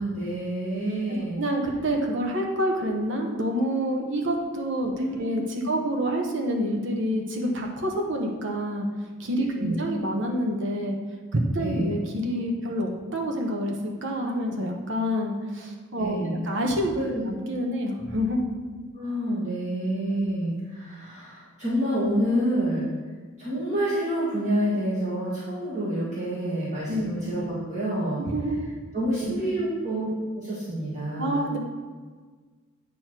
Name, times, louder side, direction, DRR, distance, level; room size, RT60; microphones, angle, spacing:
voice 1, 0.0-1.4 4.9-5.3 5.6-5.7 9.6-9.8 11.6-11.9 16.0-16.5 16.9-17.2 18.9-22.9 23.4-28.2 28.9-30.1 30.4-31.4, right 1 dB, 35° right, -10 dB, 1.6 m, -28 dB
voice 2, 1.4-8.9 9.2-11.0 11.3-16.9 17.3-18.4 26.9-27.2 28.2-28.6 29.2-29.4 31.2-31.6, equal, 65° right, 1 dB, 1.1 m, -27 dB
8.7 x 3.1 x 6.0 m, 1.4 s
head